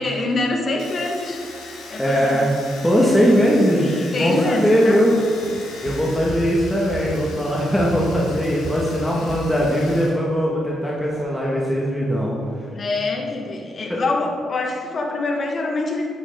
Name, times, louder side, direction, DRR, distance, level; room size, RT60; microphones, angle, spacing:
voice 1, 0.0-1.4 1.9-2.5 3.0-3.1 4.1-5.0 9.1-9.3 12.6-16.1, left 2 dB, 50° left, 2 dB, 2.0 m, -25 dB
Domestic sounds home sounds, 0.8-10.1 10.4-11.2, left 3 dB, 85° left, 2.4 m, -40 dB
voice 2, 2.0-2.5 2.8-5.2 5.8-12.4 13.9-14.0, equal, 5° left, -5 dB, 2.3 m, -20 dB
sound 1, 5.4-9.6, right 2 dB, 65° right, 2.6 m, -34 dB
12.0 x 10.0 x 4.1 m, 2.4 s
supercardioid pair, 65°, 0 cm